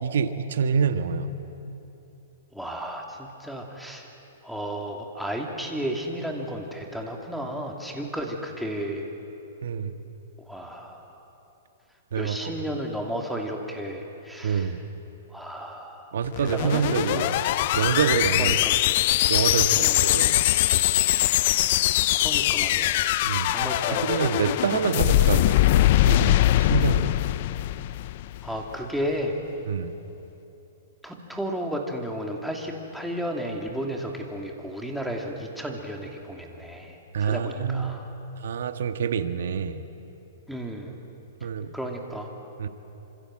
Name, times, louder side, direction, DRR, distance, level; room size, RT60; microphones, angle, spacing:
voice 1, 0.0-1.3 9.6-9.9 12.1-12.5 14.4-14.8 16.1-17.4 17.7-18.6 19.3-20.5 23.2-25.6 26.1-27.1 29.6-29.9 37.1-38.0 38.4-39.8 41.4-41.7 42.6-42.7, right 6 dB, 75° right, 9 dB, 1.6 m, -26 dB
voice 2, 2.5-4.1 4.4-9.1 10.5-11.0 12.1-14.7 15.3-16.7 17.1-17.4 18.4-18.8 19.8-20.0 22.1-23.1 23.5-24.1 28.4-29.3 31.0-38.0 40.5-40.9 41.7-42.3, equal, ahead, 0 dB, 2.8 m, -33 dB
sound 1, 16.2-28.6, left 15 dB, 50° left, 0.6 m, -22 dB
28.0 x 26.0 x 7.7 m, 3.0 s
hypercardioid pair, 150°, 0 cm